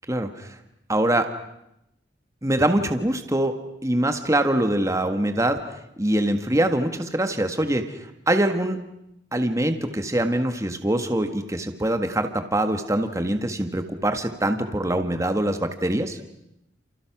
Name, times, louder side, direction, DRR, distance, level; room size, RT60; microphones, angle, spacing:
voice 1, 0.1-0.6 0.9-1.3 2.4-3.5 3.8-5.6 6.0-8.8 9.3-16.2, right 1 dB, 15° right, 7 dB, 1.6 m, -24 dB
29.5 x 29.0 x 6.1 m, 0.83 s
head